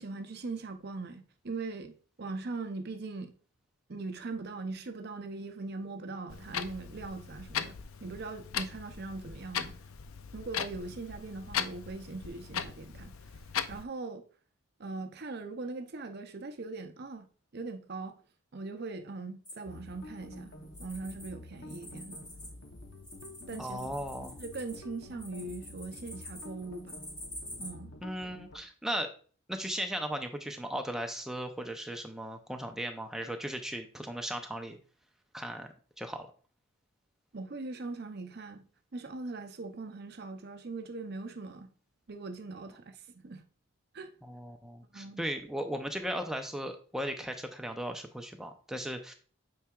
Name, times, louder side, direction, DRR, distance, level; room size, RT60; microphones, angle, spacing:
voice 1, 0.0-3.3 3.9-9.8 10.3-13.4 13.7-14.2 14.8-17.3 17.5-18.2 18.5-20.5 20.8-22.2 23.5-23.8 24.4-27.0 27.6-27.9 37.3-38.6 38.9-41.7 42.1-43.4 43.9-44.1 44.9-45.2, right 3 dB, 45° right, 0.6 m, -40 dB
Clock, 6.3-13.8, left 7 dB, 70° left, 0.5 m, -38 dB
sound 1, 19.4-21.3 21.6-27.7, left 1 dB, 20° left, 2.3 m, -47 dB
sound 2, 19.7-28.6, left 1 dB, 50° left, 0.9 m, -49 dB
voice 2, 23.6-24.4 28.0-29.1 29.5-34.8 35.3-35.7 36.0-36.3 44.2-49.1, equal, ahead, 0.5 m, -37 dB
8.6 x 4.6 x 2.4 m
head